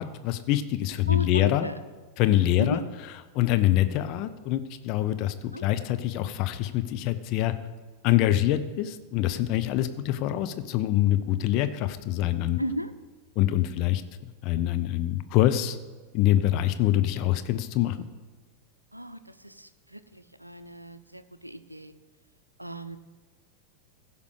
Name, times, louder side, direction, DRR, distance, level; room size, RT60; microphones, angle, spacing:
voice 1, 0.0-1.7 2.2-2.8 3.3-7.5 8.0-12.6 13.4-14.0 14.4-15.8 16.1-18.0, left 13 dB, 40° left, 10 dB, 0.6 m, -25 dB
voice 2, 1.1-1.7 2.6-2.8 5.5-5.7 12.6-12.9 18.9-21.9 22.6-23.0, equal, 85° right, 13 dB, 0.6 m, -35 dB
15.5 x 5.2 x 6.6 m, 1.3 s
figure-of-eight pair, 90°, 0 cm